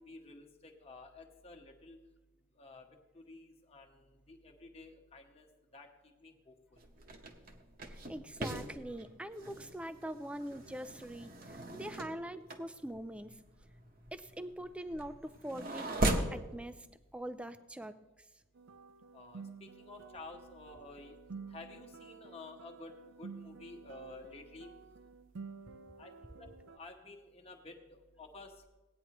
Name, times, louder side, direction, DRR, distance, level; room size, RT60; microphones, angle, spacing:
voice 1, 0.0-2.0 2.6-2.9 3.1-4.0 4.3-5.5 5.7-5.9 6.2-6.8 19.1-21.2 21.5-24.7 26.0-26.1 26.4-28.7, left 2 dB, 30° left, 2 dB, 1.2 m, -52 dB
sound 1, 6.8-16.4, right 1 dB, 45° right, 1.0 m, -39 dB
voice 2, 7.9-13.4 14.1-16.9 17.1-18.0, right 1 dB, 5° right, 12 dB, 0.4 m, -43 dB
sound 2, 18.6-26.8, right 5 dB, 70° right, 0.5 m, -51 dB
17.0 x 9.5 x 3.0 m, 1.1 s
head